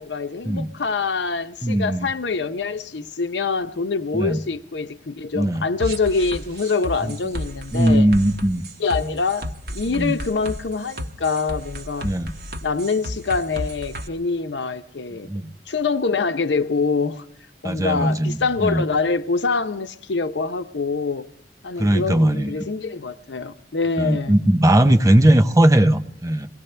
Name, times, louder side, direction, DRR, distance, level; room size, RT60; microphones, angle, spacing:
voice 1, 0.0-8.1 8.8-12.1 12.6-15.3 15.7-17.2 17.6-21.3 21.6-24.4, left 4 dB, 85° left, 0.8 m, -25 dB
voice 2, 1.6-2.1 4.1-4.4 5.3-5.6 7.0-7.1 7.7-8.6 10.0-10.1 12.0-12.3 15.3-15.5 17.6-18.8 21.8-22.5 24.0-26.5, right 1 dB, 20° right, 0.7 m, -18 dB
sound 1, 5.8-14.1, equal, 65° right, 1.3 m, -32 dB
23.5 x 17.5 x 3.3 m
head